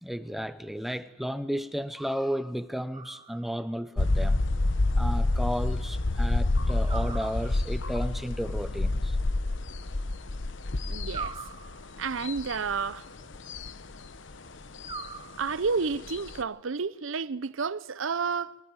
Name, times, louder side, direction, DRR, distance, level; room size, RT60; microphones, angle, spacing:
voice 1, 0.0-4.4 5.0-9.2, equal, ahead, 0.7 m, -33 dB
sound 1, 2.9-3.8 6.9-7.9 11.1-12.2 14.8-15.8, right 5 dB, 25° right, 1.0 m, -42 dB
sound 2, 4.0-16.4, left 2 dB, 70° left, 1.0 m, -28 dB
voice 2, 10.9-11.4 12.0-13.1 15.4-18.6, right 5 dB, 80° right, 0.7 m, -30 dB
23.5 x 14.0 x 9.1 m
head